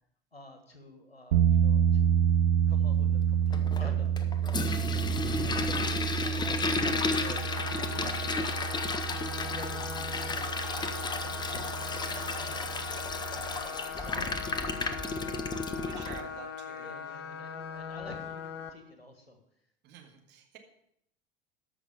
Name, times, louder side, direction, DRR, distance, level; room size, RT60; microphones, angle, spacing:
voice 1, 0.3-2.2 2.7-4.1 4.5-4.7 5.4-5.9 6.2-8.6 9.2-11.7 12.3-12.8 13.3-15.4 16.8-19.4, left 2 dB, 85° left, 6 dB, 1.6 m, -48 dB
sound 1, 1.3-13.6, right 9 dB, 65° right, 0.8 m, -29 dB
Toilet flush, 3.5-16.2, left 3 dB, 15° left, 0.8 m, -33 dB
voice 2, 4.6-5.0 15.8-17.2 19.8-20.6, right 8 dB, 35° right, 2 dB, 2.0 m, -49 dB
sound 2, 6.8-18.7, left 6 dB, 35° left, 1.1 m, -40 dB
13.5 x 6.0 x 5.5 m, 0.73 s
figure-of-eight pair, 75°, 30 cm